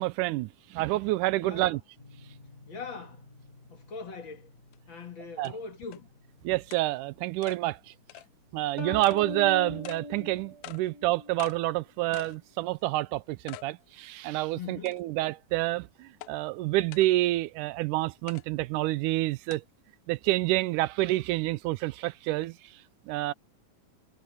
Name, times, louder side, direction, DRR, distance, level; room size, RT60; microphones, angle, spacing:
voice 1, 0.0-1.8 5.4-5.5 6.4-7.8 8.5-19.6 20.1-22.6 23.1-23.3, right 17 dB, 80° right, 2.0 m, -28 dB
voice 2, 1.4-1.8 2.7-3.2 3.7-4.5 4.9-6.1 14.6-15.0, left 5 dB, 45° left, 2.1 m, -41 dB
sound 1, 2.0-12.1, left 2 dB, 25° left, 1.1 m, -58 dB
sound 2, 4.7-4.8 5.4-5.5 5.9-6.0 6.7-6.8 7.4-7.6 8.1-8.3 9.0-9.2 9.8-10.0 10.6-10.8 11.4-11.6 12.1-12.4 12.8-12.9 13.5-13.7 14.1-14.2 14.9-15.2 16.2-16.3 16.9-17.1 18.3-18.4 19.5-19.6, left 16 dB, 75° left, 1.7 m, -44 dB
sound 3, 8.8-11.4, equal, 25° right, 0.5 m, -39 dB
omnidirectional pair, 3.7 m